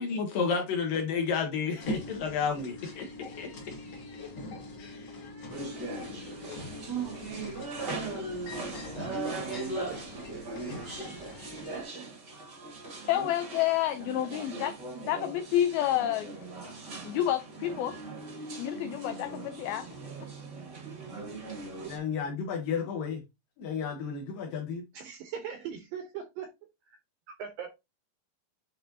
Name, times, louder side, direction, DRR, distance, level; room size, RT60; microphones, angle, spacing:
voice 1, 0.0-3.5 4.8-5.2 21.9-23.2 23.6-24.8, left 6 dB, 70° left, 2.2 m, -32 dB
sound 1, 1.8-11.8, left 1 dB, 40° left, 1.7 m, -42 dB
sound 2, 5.5-22.0, right 3 dB, 55° right, 1.1 m, -39 dB
voice 2, 8.8-10.0 10.3-11.2 14.0-14.5 20.9-21.3 21.8-21.9 24.9-26.5 26.9-27.0 27.4-27.7, right 7 dB, 75° right, 2.1 m, -42 dB
voice 3, 12.8-14.7 15.1-16.3 17.0-17.9 18.6-19.9, left 12 dB, 85° left, 2.1 m, -29 dB
8.9 x 4.1 x 2.8 m
omnidirectional pair, 5.1 m